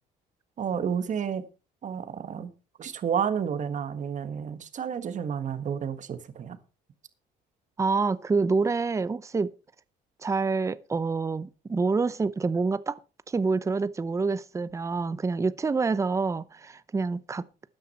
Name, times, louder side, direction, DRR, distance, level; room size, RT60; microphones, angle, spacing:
voice 1, 0.6-1.4 1.8-2.5 2.8-6.6, right 7 dB, 45° right, 1.7 m, -30 dB
voice 2, 7.8-9.5 10.2-13.0 13.3-17.4, right 4 dB, 15° right, 0.7 m, -27 dB
13.0 x 9.7 x 4.3 m
cardioid pair, 110°, 17 cm